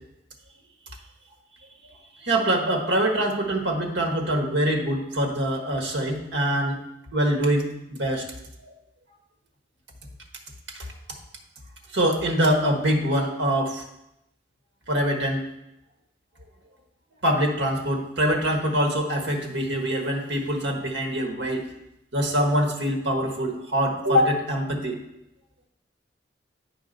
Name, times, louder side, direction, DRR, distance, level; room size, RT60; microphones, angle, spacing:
voice 1, 2.2-6.8 7.1-8.2 8.6-8.7 10.7-10.9 11.9-13.8 14.9-15.4 17.2-21.6 22.1-25.0, right 1 dB, 80° right, 3 dB, 1.3 m, -24 dB
9.5 x 4.9 x 4.0 m, 0.85 s
head